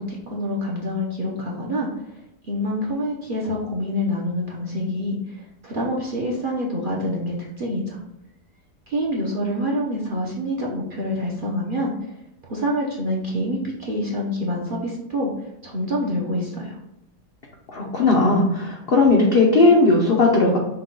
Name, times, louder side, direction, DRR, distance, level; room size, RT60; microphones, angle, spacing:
voice 1, 0.0-1.9 2.4-8.0 8.9-12.1 12.4-15.3 15.6-16.8, equal, 45° right, -3 dB, 0.7 m, -26 dB
voice 2, 17.7-20.6, left 3 dB, 55° left, -2 dB, 0.6 m, -17 dB
5.8 x 2.3 x 3.8 m, 0.85 s
omnidirectional pair, 1.8 m